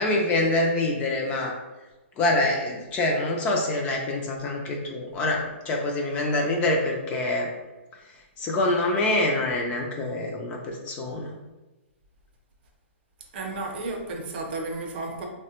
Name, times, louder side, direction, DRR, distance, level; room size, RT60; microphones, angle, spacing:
voice 1, 0.0-1.6 2.2-7.5 8.4-11.3, left 2 dB, 20° left, 0 dB, 0.3 m, -25 dB
voice 2, 13.3-15.3, right 2 dB, 45° right, 2 dB, 0.6 m, -32 dB
3.3 x 2.1 x 2.8 m, 1.1 s
hypercardioid pair, 150°, 7 cm